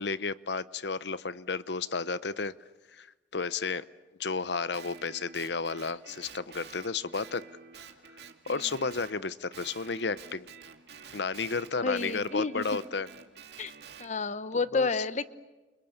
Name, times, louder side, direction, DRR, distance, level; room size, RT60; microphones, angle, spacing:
voice 1, 0.0-2.5 2.9-3.1 3.3-3.8 4.2-7.4 8.5-10.5 11.1-13.1 14.7-15.1, left 4 dB, 65° left, 16 dB, 0.9 m, -32 dB
Guitar, 4.7-9.2 9.5-14.1, right 6 dB, 60° right, 2.5 m, -49 dB
voice 2, 11.8-12.6 13.6-13.7 14.0-15.2, left 4 dB, 40° left, 14 dB, 1.0 m, -30 dB
29.5 x 29.0 x 6.7 m, 1.2 s
head